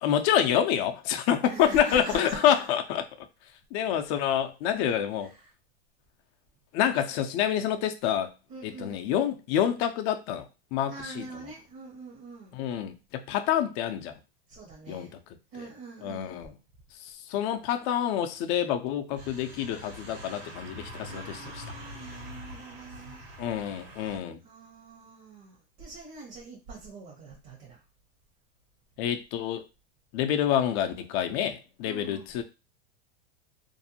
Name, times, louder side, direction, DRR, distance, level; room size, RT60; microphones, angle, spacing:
voice 1, 0.0-3.0 3.7-5.3 6.7-8.3 8.6-10.5 10.7-11.3 12.5-14.1 14.9-15.1 15.6-15.7 16.0-16.5 17.0-21.6 23.4-24.4 29.0-29.6 30.1-32.4, left 10 dB, 40° left, 0.4 m, -27 dB
voice 2, 1.4-2.7 5.2-5.5 8.5-9.1 10.9-12.6 14.5-15.1 15.5-16.5 21.1-23.3 24.4-27.8 31.8-32.3, right 3 dB, 50° right, 1.0 m, -43 dB
sound 1, 19.1-24.2, equal, 65° right, 1.4 m, -44 dB
2.6 x 2.0 x 2.7 m
hypercardioid pair, 115°, 31 cm